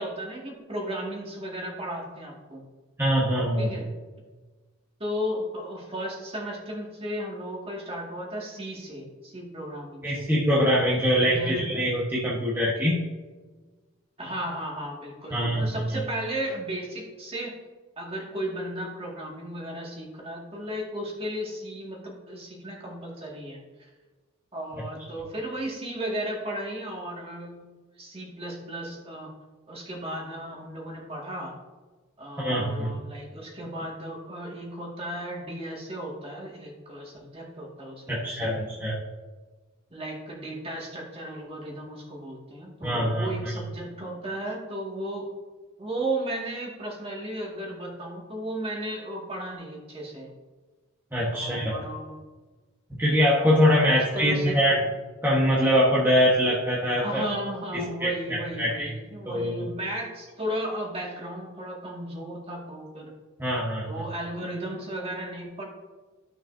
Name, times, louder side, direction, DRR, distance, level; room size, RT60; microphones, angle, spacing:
voice 1, 0.0-2.6 3.6-3.9 5.0-10.3 11.1-11.7 14.2-17.6 18.0-23.9 24.5-27.7 28.0-29.3 29.7-31.5 32.2-38.7 39.9-45.3 45.8-50.3 51.3-52.2 53.8-54.7 57.0-63.1 63.8-65.6, right 1 dB, 25° right, -2 dB, 2.1 m, -35 dB
voice 2, 3.0-3.7 10.0-13.1 15.3-16.0 32.4-32.9 38.1-39.0 42.8-43.5 51.1-51.7 53.0-54.9 55.2-57.3 57.7-58.9 59.3-59.7 63.4-64.0, equal, 10° right, -6 dB, 1.3 m, -23 dB
14.0 x 6.4 x 2.7 m, 1.3 s
head